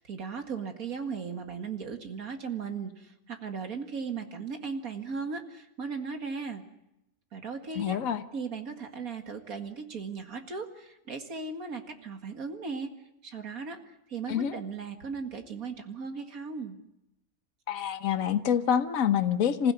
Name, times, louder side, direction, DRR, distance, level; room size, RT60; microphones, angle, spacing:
voice 1, 0.0-6.6 7.3-8.0 8.3-12.9 13.2-16.8, right 5 dB, 75° right, 6 dB, 2.4 m, -37 dB
voice 2, 7.7-8.2 14.3-14.5 17.7-19.7, left 8 dB, 65° left, 10 dB, 1.5 m, -26 dB
27.0 x 16.0 x 9.6 m, 0.86 s
omnidirectional pair, 1.5 m